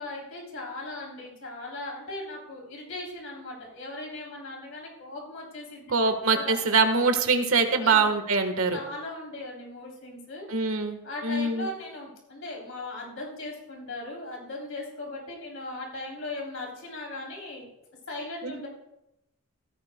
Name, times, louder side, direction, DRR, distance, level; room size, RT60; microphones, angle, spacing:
voice 1, 0.0-6.5 7.8-8.0 8.7-10.5 11.0-17.7 18.1-18.7, left 2 dB, 70° left, -2 dB, 3.3 m, -38 dB
voice 2, 5.9-8.8 10.5-11.0 11.2-11.7 18.4-18.5, right 4 dB, 80° right, 6 dB, 1.4 m, -23 dB
16.5 x 14.0 x 2.2 m, 0.89 s
head